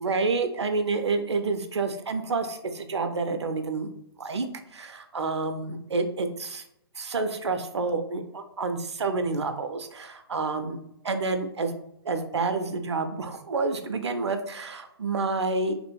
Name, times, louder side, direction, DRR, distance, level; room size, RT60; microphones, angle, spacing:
voice 1, 0.0-3.9 4.2-4.5 4.7-6.6 7.0-10.8 11.0-11.7 12.0-15.7, right 3 dB, 80° right, 7 dB, 0.4 m, -29 dB
3.0 x 2.5 x 2.3 m, 0.77 s
figure-of-eight pair, 135°, 14 cm